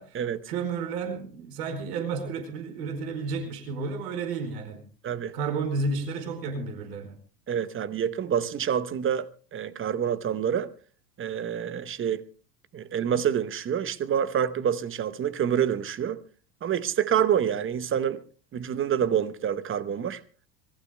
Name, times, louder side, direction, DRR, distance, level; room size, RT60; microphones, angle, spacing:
voice 1, 0.5-4.8 5.3-7.2, right 4 dB, 70° right, 4.7 m, -32 dB
voice 2, 7.5-10.7 11.2-12.2 12.7-16.2 16.6-18.2 18.5-20.2, right 9 dB, 25° right, 0.9 m, -27 dB
26.5 x 20.5 x 2.2 m
hypercardioid pair, 95°, 50 cm